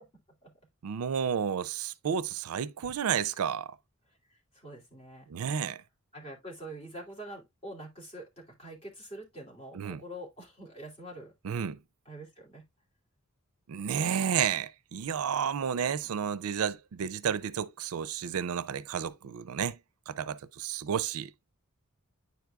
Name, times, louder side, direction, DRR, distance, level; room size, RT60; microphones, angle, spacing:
voice 1, 0.8-3.7 5.3-5.8 9.7-10.0 11.4-11.8 13.7-19.8 20.1-21.3, right 7 dB, 80° right, 0.4 m, -31 dB
voice 2, 4.1-5.3 6.1-11.3 12.0-12.6, right 1 dB, 25° left, 2.7 m, -45 dB
9.4 x 4.7 x 2.3 m
head